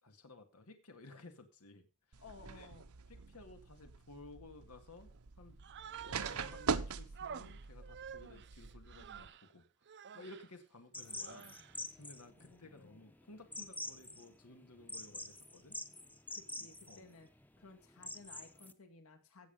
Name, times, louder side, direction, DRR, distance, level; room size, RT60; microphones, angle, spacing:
voice 1, 0.0-2.2 2.5-2.7 3.1-5.1 5.4-5.6 6.0-9.6 10.1-11.5 12.0-15.8 16.6-17.1, left 2 dB, 90° left, 6 dB, 2.0 m, -56 dB
sound 1, 2.1-9.3, right 5 dB, 75° right, 0.9 m, -43 dB
voice 2, 2.2-2.9 12.4-13.1 16.3-17.3 17.6-19.5, left 3 dB, 65° left, 6 dB, 2.1 m, -57 dB
Human voice, 5.6-6.8 7.1-9.5 9.9-10.5 11.1-11.8, right 7 dB, 50° right, 0.6 m, -50 dB
sound 2, 10.9-18.7, left 2 dB, 10° left, 0.9 m, -47 dB
16.5 x 7.4 x 5.2 m, 0.32 s
head